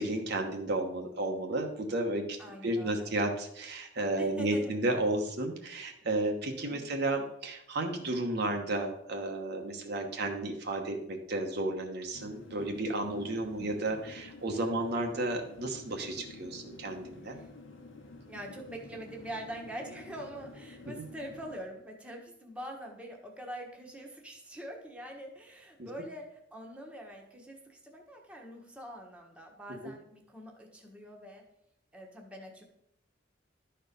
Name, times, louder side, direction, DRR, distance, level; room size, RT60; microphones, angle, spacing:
voice 1, 0.0-2.4 2.6-17.4 25.8-25.9 29.8-29.9, right 2 dB, 60° right, 3 dB, 1.1 m, -33 dB
voice 2, 2.4-3.1 4.2-5.1 6.7-6.9 13.5-14.0 17.3-17.5 18.3-31.4 31.9-32.6, right 1 dB, 5° right, 0 dB, 1.3 m, -44 dB
sound 1, 12.1-21.6, left 2 dB, 80° left, 1.1 m, -50 dB
11.5 x 4.5 x 5.2 m, 0.77 s
head